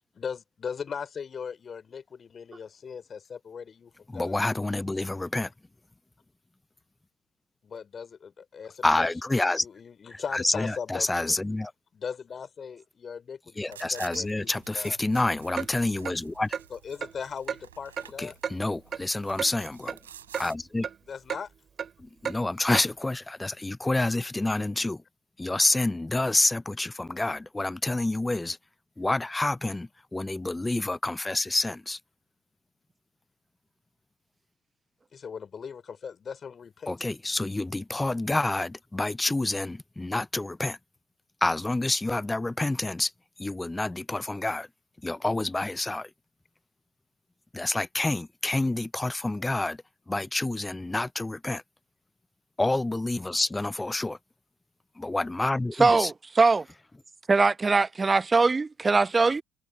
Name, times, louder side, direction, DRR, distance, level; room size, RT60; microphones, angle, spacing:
voice 1, 0.1-4.4 7.6-9.1 9.6-11.4 11.9-15.0 16.7-18.4 21.0-21.5 35.1-37.0, left 6 dB, 40° left, 4.7 m, -39 dB
voice 2, 4.1-5.5 8.8-9.6 10.3-11.7 13.6-16.5 18.2-20.0 20.4-20.9 22.2-25.0 25.4-28.6 29.0-32.0 36.9-40.8 41.4-43.1 43.4-44.7 45.0-46.1 47.5-49.8 50.1-51.6 52.6-54.2 55.0-56.1, left 2 dB, 15° left, 0.3 m, -28 dB
sound 1, 13.6-20.5, right 10 dB, 85° right, 5.2 m, -50 dB
Clock, 15.6-15.7 16.0-16.2 16.5-16.7 17.0-17.1 17.5-17.6 18.0-18.1 18.4-18.6 18.9-19.0 19.4-19.5 19.9-20.0 20.3-20.4 20.8-21.0 21.3-21.4 21.8-21.9 22.2-22.4 22.7-22.9, right 7 dB, 40° right, 3.5 m, -32 dB
voice 3, 55.8-56.6 57.3-59.4, right 4 dB, 25° right, 0.9 m, -21 dB
hypercardioid pair, 60°, 0 cm